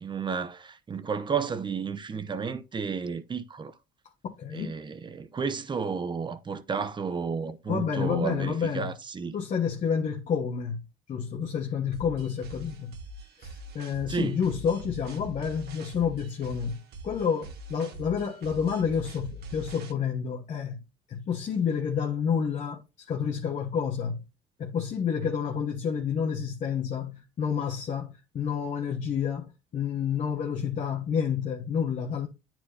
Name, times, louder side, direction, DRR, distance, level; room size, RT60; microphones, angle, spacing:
voice 1, 0.0-3.7 4.5-9.3 14.1-14.4, right 5 dB, 25° right, 0.8 m, -32 dB
voice 2, 4.2-4.7 7.7-8.9 9.3-10.8 11.1-12.9 13.4-13.5 13.7-16.8 17.0-24.2 24.6-32.3, left 7 dB, 50° left, 1.3 m, -29 dB
sound 1, 11.9-19.9, right 2 dB, 70° right, 1.6 m, -44 dB
9.6 x 4.5 x 2.7 m
cardioid pair, 110°, 17 cm